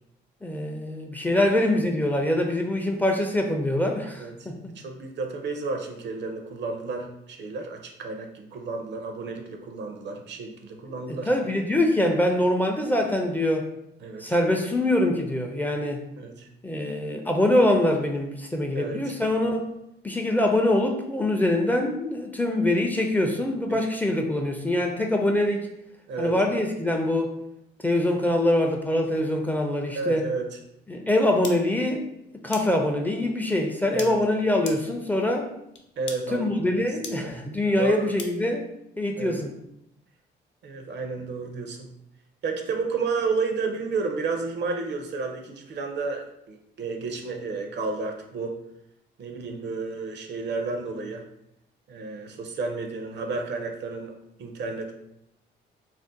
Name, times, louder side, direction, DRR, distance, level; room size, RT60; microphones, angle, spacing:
voice 1, 0.4-4.7 11.3-13.7 14.2-16.0 16.6-19.6 20.0-25.6 26.2-27.4 27.8-30.2 30.9-32.0 32.4-35.5 36.3-38.7 39.0-39.6, left 1 dB, 10° left, 2 dB, 0.4 m, -24 dB
voice 2, 4.2-11.3 14.0-14.2 16.2-16.5 18.7-19.1 23.7-23.8 26.1-26.4 29.9-30.6 33.9-34.2 36.0-37.4 37.8-38.1 39.2-39.4 40.6-41.9 42.4-48.5 49.2-51.3 51.9-54.9, right 4 dB, 60° right, 4 dB, 0.5 m, -32 dB
sound 1, 31.4-31.5 32.5-32.6 34.0-34.1 34.7-34.8 35.8-35.9 36.1-36.2 37.0-37.1 38.2-38.3, left 5 dB, 65° left, 0.5 m, -34 dB
2.5 x 2.1 x 3.8 m, 0.81 s
cardioid pair, 90°, 20 cm